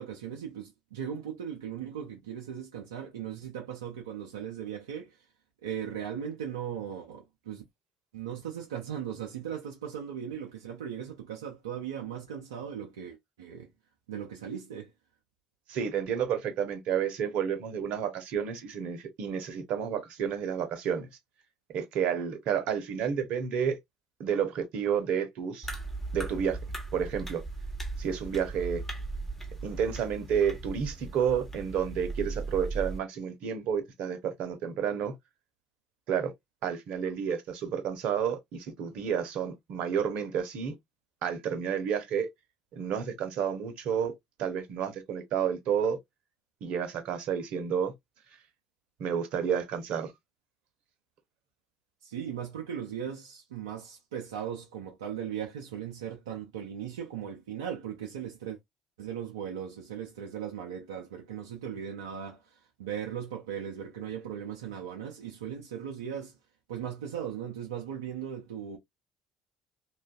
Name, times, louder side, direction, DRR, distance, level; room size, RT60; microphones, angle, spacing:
voice 1, 0.0-5.3 5.6-7.6 8.1-13.7 14.1-14.9 52.0-58.6 59.0-66.4 66.7-68.8, right 9 dB, 85° right, 0.5 m, -38 dB
voice 2, 15.7-21.1 21.7-23.8 24.2-25.7 26.1-26.6 26.9-27.4 28.0-28.8 29.6-35.2 36.1-36.3 36.6-40.7 41.2-42.3 42.7-44.1 44.4-46.0 46.6-47.9 49.0-50.1, right 7 dB, 65° right, 0.8 m, -30 dB
sound 1, 25.6-33.0, right 3 dB, 15° left, 1.1 m, -38 dB
3.1 x 2.4 x 2.3 m
hypercardioid pair, 55°, 2 cm